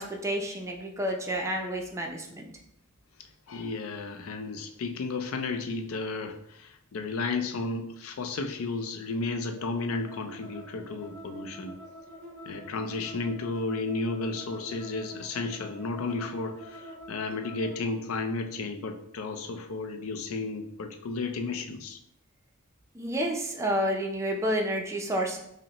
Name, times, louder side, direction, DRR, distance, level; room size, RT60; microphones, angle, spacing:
voice 1, 0.0-2.5 22.9-25.4, equal, 15° right, 1 dB, 0.5 m, -30 dB
voice 2, 3.5-11.8 12.5-22.0, left 3 dB, 70° left, 6 dB, 0.4 m, -33 dB
sound 1, 9.5-17.8, equal, 5° left, 1.2 m, -46 dB
5.2 x 2.1 x 2.9 m, 0.77 s
head